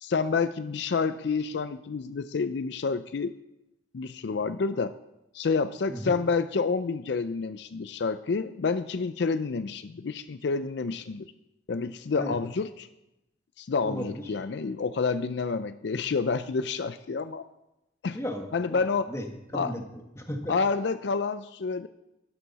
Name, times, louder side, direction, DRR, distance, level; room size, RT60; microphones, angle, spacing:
voice 1, 0.0-3.3 3.9-5.0 5.3-11.3 11.7-12.9 13.6-17.4 18.0-18.2 18.5-19.1 19.5-19.8 20.5-21.9, left 4 dB, 65° left, 12 dB, 0.4 m, -29 dB
voice 2, 13.8-14.2 18.1-18.8 19.1-19.8 20.2-20.5, equal, 15° left, 4 dB, 1.3 m, -34 dB
12.5 x 12.0 x 4.1 m, 0.91 s
head